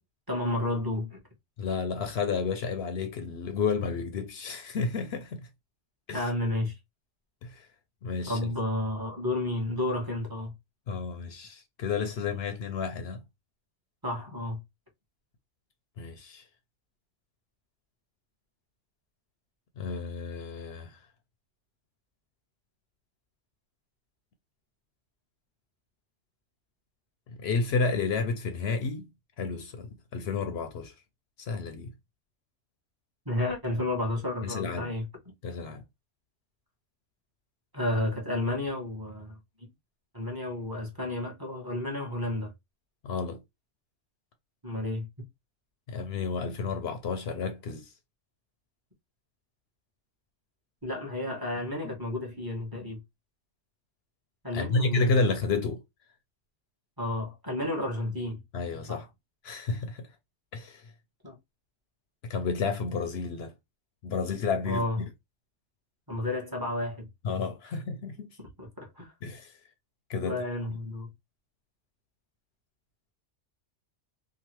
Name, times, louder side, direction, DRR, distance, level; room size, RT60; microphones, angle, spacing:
voice 1, 0.3-1.2 6.1-6.7 8.2-10.5 14.0-14.6 33.3-35.1 37.7-39.4 40.1-42.5 44.6-45.1 50.8-53.0 54.4-55.2 57.0-58.4 58.9-59.0 61.2-61.3 64.6-65.0 66.1-67.1 68.6-69.1 70.2-71.1, left 1 dB, 20° right, 0.9 m, -31 dB
voice 2, 1.6-5.4 6.1-6.3 7.4-7.7 8.0-8.5 10.9-13.2 16.0-16.4 19.8-21.0 27.3-29.1 29.4-30.9 31.4-31.9 34.4-34.9 35.4-35.8 43.0-43.4 45.9-47.9 51.8-51.9 54.5-55.8 58.5-59.1 59.4-60.1 60.5-60.8 62.2-63.5 64.0-64.8 67.2-68.3 69.2-69.5 70.1-70.4, left 4 dB, 65° left, 0.8 m, -31 dB
2.9 x 2.4 x 2.9 m
omnidirectional pair, 1.2 m